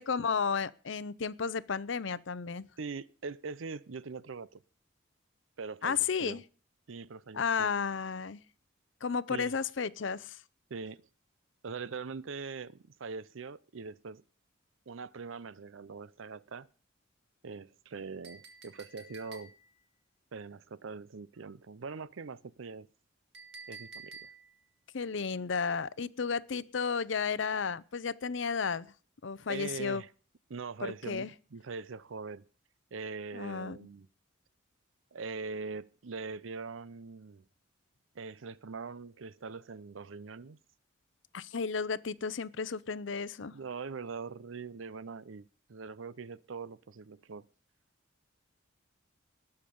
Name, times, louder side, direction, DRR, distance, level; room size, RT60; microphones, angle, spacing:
voice 1, 0.1-2.7 5.8-6.4 7.3-8.4 9.0-10.4 24.9-28.9 29.2-30.0 30.8-31.3 33.3-33.8 41.3-43.6, left 5 dB, 70° left, 0.6 m, -33 dB
voice 2, 2.8-4.6 5.6-6.4 6.9-7.7 9.3-9.5 10.7-11.1 11.6-14.2 14.9-16.7 17.4-19.5 20.3-22.9 23.7-24.3 29.5-30.1 30.5-32.4 32.9-34.1 35.1-37.4 38.1-40.6 43.5-47.5, right 4 dB, 80° right, 0.6 m, -42 dB
Chink clink, 18.2-19.8 23.3-24.6, right 4 dB, 60° right, 2.8 m, -50 dB
19.5 x 6.7 x 5.4 m
head